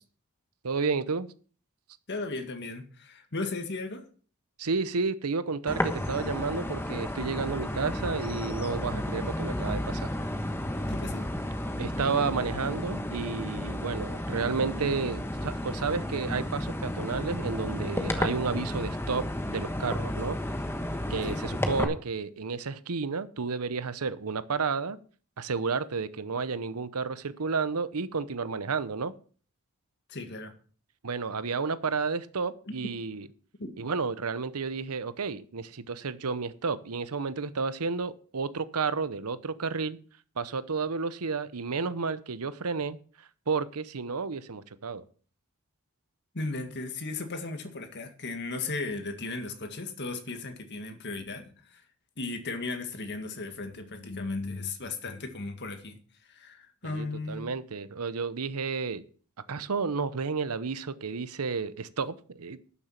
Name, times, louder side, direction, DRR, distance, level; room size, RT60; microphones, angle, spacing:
voice 1, 0.6-1.3 4.6-10.1 11.8-20.4 21.1-25.0 25.4-29.1 31.0-33.3 33.8-40.0 40.4-43.0 43.5-45.0 56.8-59.0 59.5-62.6, right 4 dB, 80° right, 15 dB, 0.8 m, -31 dB
voice 2, 2.1-4.0 10.9-11.3 21.2-21.4 30.1-30.5 32.7-32.8 33.6-33.7 46.3-51.8 52.2-57.6, left 3 dB, 50° left, 6 dB, 1.9 m, -36 dB
sound 1, 5.7-21.8, left 1 dB, 10° left, 1.3 m, -32 dB
12.0 x 7.1 x 5.9 m, 0.42 s
head